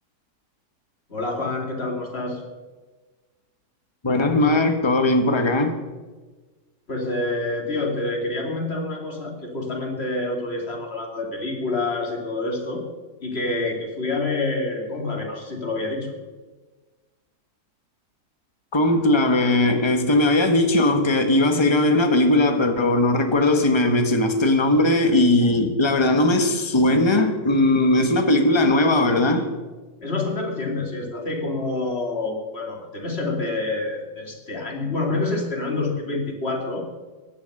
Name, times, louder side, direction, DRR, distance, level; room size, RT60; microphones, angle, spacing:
voice 1, 1.1-2.4 6.9-12.8 13.2-16.2 30.0-36.9, left 2 dB, 40° left, 2.7 m, -27 dB
voice 2, 4.0-5.8 18.7-29.5, left 2 dB, 20° left, 1.3 m, -19 dB
15.5 x 10.5 x 6.6 m
omnidirectional pair, 1.7 m